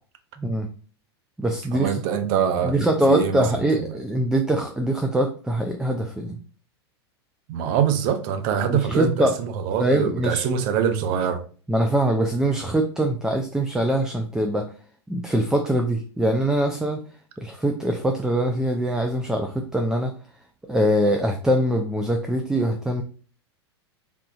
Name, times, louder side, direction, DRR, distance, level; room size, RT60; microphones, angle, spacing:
voice 1, 0.4-0.7 1.4-2.0 2.6-6.4 8.7-9.3 9.8-10.5 11.7-14.7 15.1-17.0 17.4-20.2 20.7-23.0, right 1 dB, 5° right, 4 dB, 0.3 m, -23 dB
voice 2, 1.7-2.8 3.1-3.9 7.5-11.4, right 8 dB, 50° right, 8 dB, 0.6 m, -24 dB
3.5 x 2.7 x 2.6 m, 0.41 s
hypercardioid pair, 100°, 14 cm